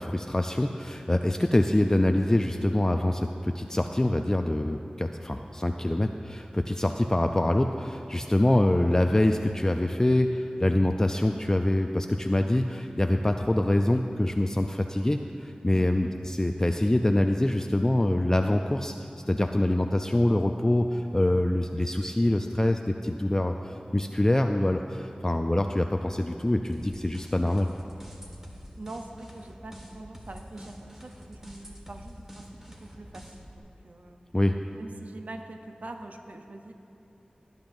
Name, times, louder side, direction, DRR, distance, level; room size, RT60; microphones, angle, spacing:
voice 1, 0.0-18.9 19.3-27.7 34.3-34.5, left 1 dB, 20° left, 5 dB, 0.4 m, -25 dB
sound 1, 26.7-33.6, equal, 15° right, 1.5 m, -47 dB
voice 2, 28.8-34.2 34.8-36.7, right 2 dB, 70° right, 4 dB, 0.7 m, -44 dB
17.0 x 10.5 x 2.6 m, 2.9 s
wide cardioid pair, 55°, 3 cm